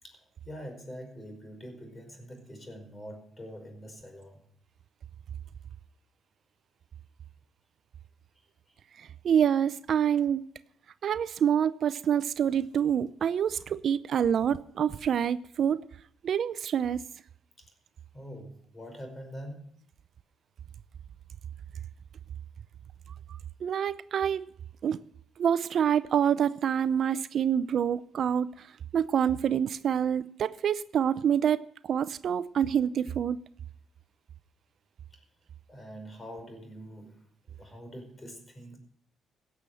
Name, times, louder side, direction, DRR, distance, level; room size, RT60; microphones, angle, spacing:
voice 1, 0.4-4.4 8.3-8.8 17.6-17.7 18.1-19.7 35.1-35.2 35.7-38.8, equal, 25° left, 4.9 m, -45 dB
voice 2, 9.0-10.4 11.0-15.8 16.2-17.0 23.6-24.5 24.8-25.0 25.4-28.7 28.9-33.4, right 8 dB, 60° right, 0.5 m, -27 dB
17.0 x 7.0 x 7.6 m
cardioid pair, 90°, 0 cm